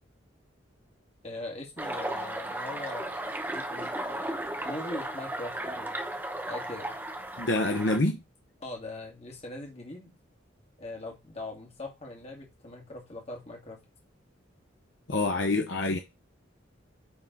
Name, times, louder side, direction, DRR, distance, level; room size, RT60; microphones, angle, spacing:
voice 1, 1.2-3.3 3.5-4.3 4.6-6.0 6.5-7.0 8.6-10.1 10.8-13.8, left 2 dB, 35° left, 2.2 m, -41 dB
sound 1, 1.8-8.0, right 1 dB, 10° right, 1.0 m, -35 dB
voice 2, 7.4-8.2 15.1-16.0, left 2 dB, 65° left, 0.9 m, -26 dB
9.0 x 3.8 x 3.9 m
head